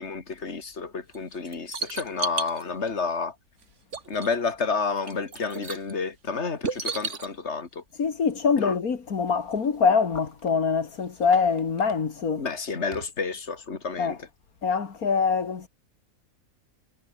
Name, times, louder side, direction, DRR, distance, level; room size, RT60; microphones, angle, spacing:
voice 1, 0.0-3.3 4.1-7.8 8.6-8.7 12.4-14.2, left 4 dB, 50° left, 2.7 m, -30 dB
sound 1, 1.1-2.6 3.6-3.7 3.9-4.5 4.8-5.9 6.6-7.3 9.3-9.4 9.6-9.7 10.4-10.5 11.0-11.9 12.9-13.1 13.4-13.5, right 5 dB, 55° right, 2.2 m, -34 dB
voice 2, 8.0-12.5 14.0-14.2 14.6-15.7, left 5 dB, 85° left, 2.4 m, -24 dB
omnidirectional pair, 1.5 m